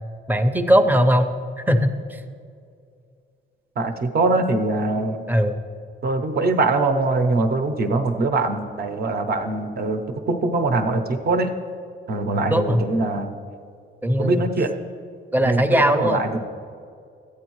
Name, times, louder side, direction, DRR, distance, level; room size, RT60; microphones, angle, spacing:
voice 1, 0.3-1.3 1.7-2.2 5.3-5.6 12.5-12.8 14.0-14.5 15.3-16.2, equal, 10° right, 7 dB, 0.6 m, -19 dB
voice 2, 3.8-5.3 6.0-11.5 12.1-13.3 14.2-14.7 15.4-16.4, right 3 dB, 50° right, 6 dB, 0.8 m, -22 dB
14.0 x 8.6 x 3.1 m, 2.4 s
cardioid pair, 90°, 20 cm